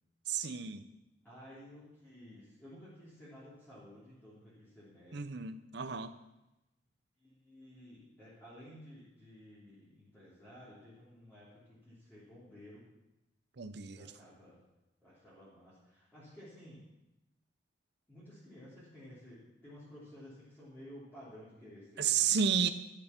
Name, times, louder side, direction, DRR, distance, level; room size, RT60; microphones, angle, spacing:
voice 1, 0.3-0.8 5.1-6.1 13.6-14.1 22.0-22.7, right 7 dB, 60° right, 11 dB, 0.7 m, -32 dB
voice 2, 1.2-5.3 7.2-12.8 13.9-14.6 15.0-16.9 18.1-22.3, equal, 10° left, -12 dB, 3.2 m, -54 dB
12.0 x 6.9 x 5.9 m, 0.94 s
head